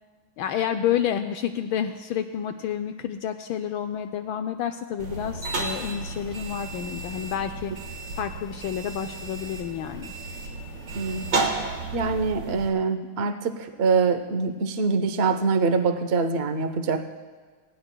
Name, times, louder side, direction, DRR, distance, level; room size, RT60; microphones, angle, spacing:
voice 1, 0.4-7.7 8.2-10.1, left 9 dB, 75° left, 8 dB, 1.2 m, -29 dB
sound 1, 5.0-12.7, right 3 dB, 55° right, 2.0 m, -32 dB
voice 2, 10.9-11.3 11.9-17.0, right 4 dB, 85° right, 6 dB, 0.5 m, -24 dB
20.0 x 16.0 x 2.2 m, 1.5 s
omnidirectional pair, 2.4 m